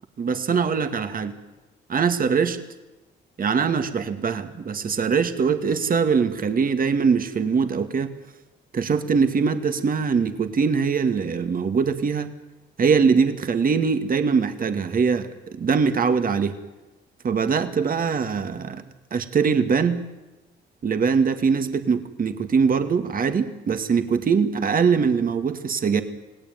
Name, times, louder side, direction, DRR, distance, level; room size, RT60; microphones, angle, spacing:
voice 1, 0.2-1.3 1.9-2.6 3.4-8.1 8.7-12.3 12.8-16.6 17.2-18.8 19.1-20.0 20.8-26.0, right 5 dB, 45° right, 9 dB, 2.3 m, -22 dB
27.5 x 18.0 x 9.4 m, 1.1 s
cardioid pair, 90°, 20 cm